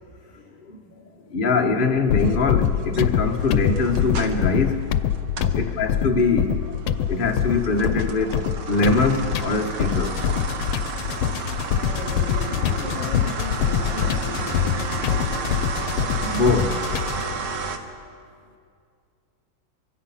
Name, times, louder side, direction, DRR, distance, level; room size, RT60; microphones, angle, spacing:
voice 1, 0.1-0.5 1.1-1.3 5.3-5.7 11.1-16.1 17.6-17.9, left 1 dB, 60° left, -8 dB, 5.5 m, -38 dB
voice 2, 1.3-4.8 5.6-6.5 7.1-8.4 8.7-10.1 16.2-16.8, left 3 dB, 30° left, 2 dB, 1.4 m, -22 dB
sound 1, 2.1-17.3, left 9 dB, 85° left, 1.5 m, -25 dB
sound 2, 2.2-5.6 6.0-17.8, right 5 dB, 60° right, 1.8 m, -33 dB
24.5 x 22.5 x 5.7 m, 2.3 s
omnidirectional pair, 2.2 m